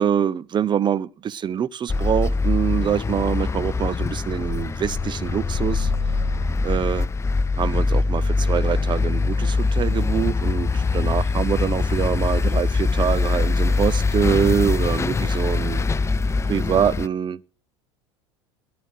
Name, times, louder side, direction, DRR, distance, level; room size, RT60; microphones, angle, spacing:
voice 1, 0.0-5.9 6.6-7.1 7.6-15.8 16.5-17.4, right 8 dB, 30° right, 0.8 m, -24 dB
sound 1, 1.9-17.1, left 3 dB, 20° left, 0.7 m, -23 dB
15.5 x 9.2 x 6.7 m
hypercardioid pair, 90°, 15 cm